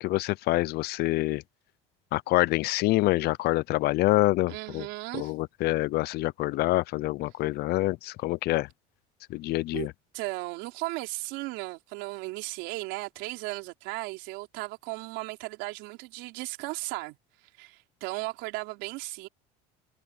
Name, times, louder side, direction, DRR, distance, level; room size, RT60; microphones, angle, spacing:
voice 1, 0.0-1.4 2.1-4.9 5.1-8.7 9.3-9.9, left 18 dB, 60° left, 0.6 m, -26 dB
voice 2, 4.5-5.3 9.7-9.9 10.1-17.2 17.6-19.3, right 22 dB, 75° right, 3.8 m, -36 dB
cardioid pair, 125°, 19 cm